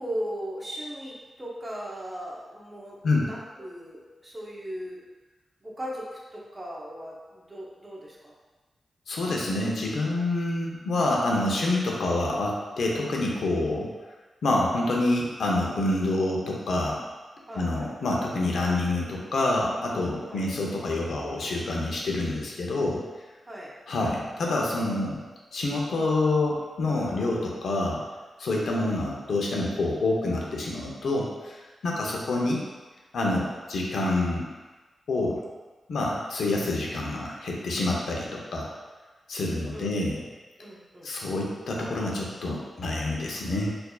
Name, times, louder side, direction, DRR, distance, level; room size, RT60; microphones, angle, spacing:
voice 1, 0.0-5.0 5.6-8.3 17.5-17.9 20.2-20.5 23.5-23.7 28.7-28.8 31.9-32.2 39.7-40.0 40.6-41.1, equal, 20° right, -4 dB, 0.7 m, -38 dB
voice 2, 9.1-13.9 14.4-17.0 17.5-23.0 23.9-25.2 25.5-28.0 28.4-32.6 33.1-34.5 35.1-35.4 35.9-38.7 39.3-40.2 41.0-43.7, left 2 dB, 75° left, -2 dB, 0.6 m, -27 dB
4.4 x 2.6 x 2.3 m, 1.3 s
wide cardioid pair, 105°, 0 cm